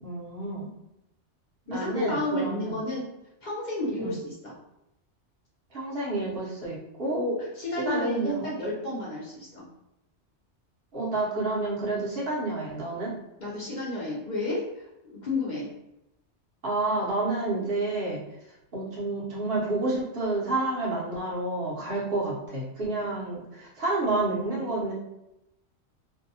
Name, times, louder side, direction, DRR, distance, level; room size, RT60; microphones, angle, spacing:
voice 1, 0.0-0.7 1.7-2.7 4.0-4.1 5.7-7.2 7.9-8.5 10.9-13.1 16.6-18.2 18.7-24.9, right 2 dB, 60° right, -5 dB, 1.0 m, -29 dB
voice 2, 1.7-3.0 3.4-4.5 7.1-9.6 13.4-15.7, left 1 dB, 50° left, -5 dB, 0.7 m, -31 dB
2.6 x 2.2 x 2.6 m, 0.88 s
omnidirectional pair, 1.1 m